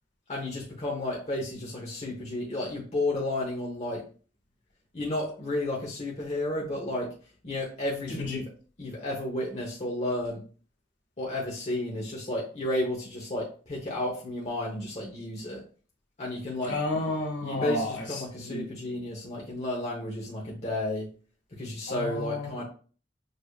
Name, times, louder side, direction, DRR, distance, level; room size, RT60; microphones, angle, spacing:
voice 1, 0.3-4.0 4.9-7.1 7.4-8.5 8.8-10.4 11.2-15.6 16.2-16.8 17.4-21.1 21.6-22.6, left 1 dB, 40° left, 1.0 m, -32 dB
voice 2, 16.7-18.7 21.9-22.6, left 2 dB, 70° left, 2.0 m, -32 dB
6.5 x 2.8 x 2.3 m
head